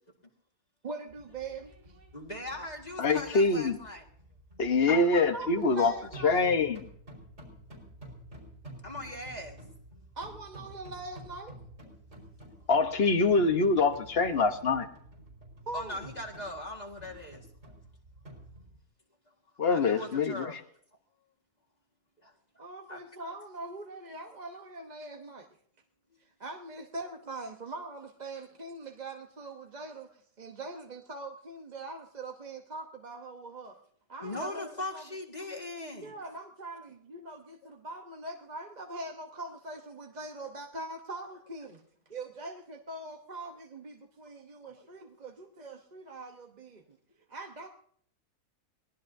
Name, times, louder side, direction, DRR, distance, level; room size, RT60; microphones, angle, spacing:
voice 1, 0.8-2.0 4.9-6.4 10.2-11.6 15.7-16.0 20.0-20.3 22.6-25.5 26.4-33.8 34.1-35.0 36.0-41.8 42.1-46.8 47.3-47.7, right 2 dB, 35° right, 3 dB, 1.0 m, -42 dB
sound 1, 1.1-18.8, right 1 dB, 50° right, 5.0 m, -51 dB
voice 2, 2.1-4.0 8.8-9.6 12.6-12.7 15.7-17.5 19.7-20.6 22.2-23.0 34.2-36.1 37.6-37.7 44.6-44.9, left 1 dB, 30° left, 0 dB, 1.9 m, -40 dB
voice 3, 3.0-3.8 4.6-5.9 6.2-6.8 12.7-14.9 19.6-20.5, left 3 dB, 45° left, 8 dB, 1.3 m, -25 dB
23.0 x 18.5 x 2.7 m, 0.63 s
omnidirectional pair, 1.5 m